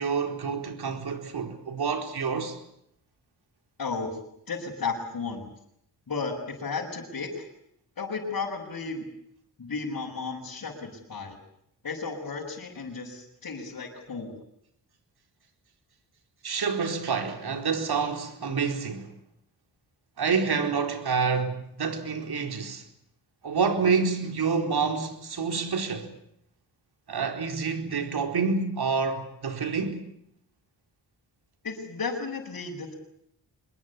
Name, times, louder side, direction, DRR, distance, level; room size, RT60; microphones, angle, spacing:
voice 1, 0.0-2.6 16.4-19.1 20.2-22.8 23.4-26.1 27.1-30.0, right 5 dB, 65° right, 4.5 m, -28 dB
voice 2, 3.8-4.1 4.5-5.5 6.1-7.5 8.0-9.1 9.6-11.4 11.8-14.3 31.6-32.9, left 4 dB, 50° left, 6.8 m, -34 dB
26.0 x 22.5 x 8.6 m
cardioid pair, 90°, 42 cm